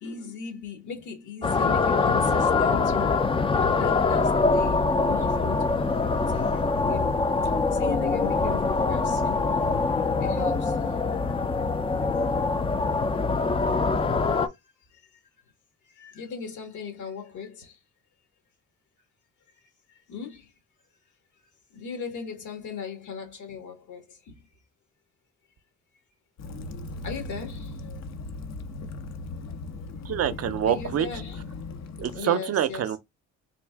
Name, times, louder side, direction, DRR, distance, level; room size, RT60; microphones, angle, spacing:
voice 1, 0.0-3.2 3.7-7.1 7.8-9.6 10.2-10.7 16.0-17.7 20.1-20.4 21.7-24.0 27.0-27.7 30.7-31.4 32.1-32.9, left 6 dB, 75° left, 1.6 m, -38 dB
sound 1, 1.4-14.5, left 4 dB, 20° left, 0.4 m, -24 dB
Waves surf / Splash splatter / Trickle dribble, 26.4-32.2, left 3 dB, 60° left, 0.7 m, -38 dB
voice 2, 30.0-31.1 32.0-33.0, right 10 dB, 55° right, 0.6 m, -26 dB
3.7 x 2.4 x 3.4 m
cardioid pair, 90°, 30 cm